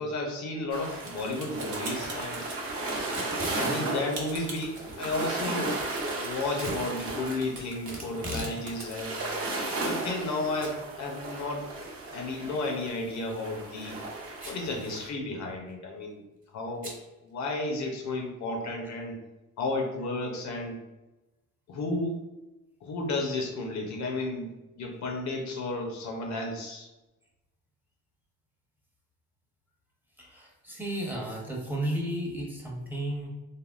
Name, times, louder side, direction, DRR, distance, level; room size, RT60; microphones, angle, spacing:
voice 1, 0.0-2.5 3.5-5.8 6.2-9.2 9.8-11.7 12.1-14.0 14.5-16.2 16.5-16.9 17.2-19.2 19.6-20.8 21.7-22.2 22.8-26.9, left 2 dB, 65° left, 3 dB, 0.6 m, -33 dB
sound 1, 0.7-15.1, right 2 dB, 50° right, 0.8 m, -35 dB
sound 2, 0.9-8.9, right 3 dB, 80° right, 0.8 m, -42 dB
Packing tape duct tape / Tearing, 3.0-3.6 6.5-6.8 7.9-8.6 8.9-9.0 9.7-10.3 10.6-10.7 11.1-11.2 13.2-13.4 14.3-14.7 15.0-15.1 15.4-15.7 16.8-17.0, equal, 30° right, 1.0 m, -38 dB
voice 2, 30.2-33.3, right 1 dB, 5° right, -2 dB, 0.7 m, -33 dB
3.4 x 2.0 x 2.4 m, 1.0 s
cardioid pair, 90°, 30 cm